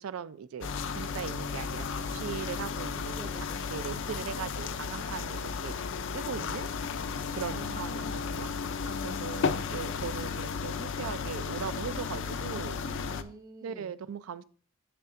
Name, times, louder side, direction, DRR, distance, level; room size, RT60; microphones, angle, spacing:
voice 1, 0.0-0.7 1.0-3.2 3.7-5.7 6.1-6.7 7.3-8.5 9.0-12.8 13.6-14.4, right 7 dB, 80° right, 14 dB, 0.4 m, -39 dB
sound 1, 0.6-13.2, left 5 dB, 60° left, 0.5 m, -34 dB
voice 2, 3.2-3.8 7.5-8.5 8.8-9.8 12.0-13.9, right 1 dB, 15° right, 5 dB, 0.6 m, -47 dB
7.7 x 6.8 x 2.5 m, 0.43 s
head